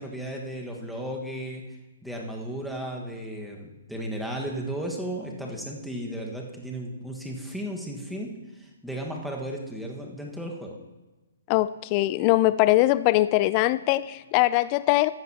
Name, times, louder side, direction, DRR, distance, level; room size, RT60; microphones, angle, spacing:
voice 1, 0.0-1.6 2.0-10.8, right 1 dB, ahead, -1 dB, 1.5 m, -35 dB
voice 2, 11.5-15.1, left 17 dB, 35° left, 17 dB, 0.4 m, -22 dB
15.0 x 10.0 x 2.9 m, 1.1 s
hypercardioid pair, 135°, 0 cm